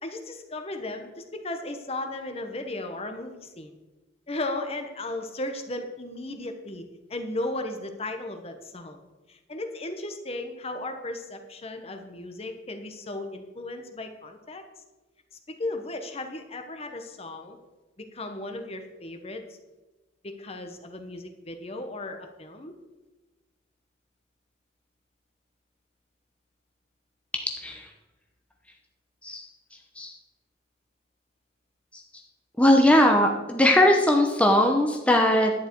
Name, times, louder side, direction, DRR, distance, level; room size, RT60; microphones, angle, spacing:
voice 1, 0.0-3.7 4.3-6.8 7.1-9.0 9.3-14.6 15.5-17.6 18.1-19.4 20.2-22.7, left 2 dB, 30° left, 6 dB, 1.0 m, -35 dB
voice 2, 32.6-35.5, left 1 dB, 5° left, 2 dB, 0.9 m, -20 dB
11.0 x 9.3 x 4.6 m, 1.1 s
head